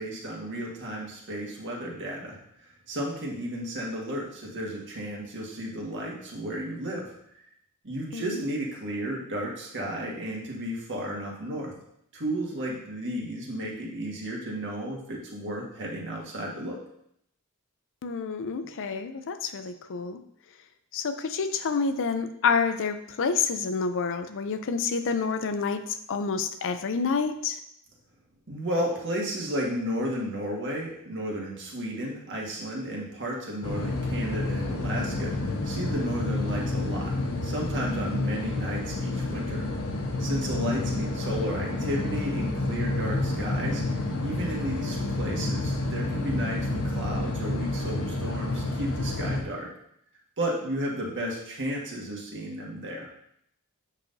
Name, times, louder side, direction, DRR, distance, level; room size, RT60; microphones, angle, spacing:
voice 1, 0.0-2.4 2.9-7.1 7.8-11.7 12.1-16.8 28.5-39.7 40.2-43.8 44.2-49.7 50.4-53.1, equal, 55° right, -2 dB, 1.6 m, -33 dB
voice 2, 8.1-8.4 18.0-20.2 20.9-27.6 40.5-40.9, left 5 dB, 60° left, 9 dB, 0.5 m, -28 dB
sound 1, 33.6-49.4, left 2 dB, 75° left, 1.0 m, -29 dB
8.1 x 5.6 x 2.7 m, 0.72 s
head